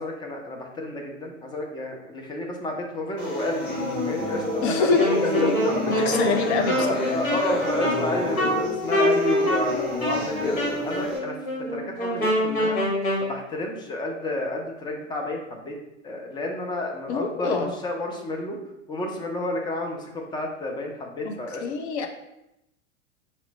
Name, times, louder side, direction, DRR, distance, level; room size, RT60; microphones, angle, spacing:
voice 1, 0.0-4.9 5.4-6.1 6.8-10.6 10.8-11.4 11.7-12.8 13.2-15.8 16.0-18.6 18.9-21.6, left 2 dB, 10° left, 1 dB, 0.4 m, -30 dB
sound 1, 3.2-11.2, left 1 dB, 30° left, 1.3 m, -29 dB
voice 2, 4.6-5.1 5.9-7.0 17.1-17.7 21.2-21.3 21.6-22.1, left 5 dB, 55° left, 5 dB, 0.7 m, -25 dB
Wind instrument woodwind instrument, 5.0-13.3, equal, 80° left, 1.4 m, -26 dB
4.2 x 2.1 x 3.9 m, 0.86 s
hypercardioid pair, 95°, 40 cm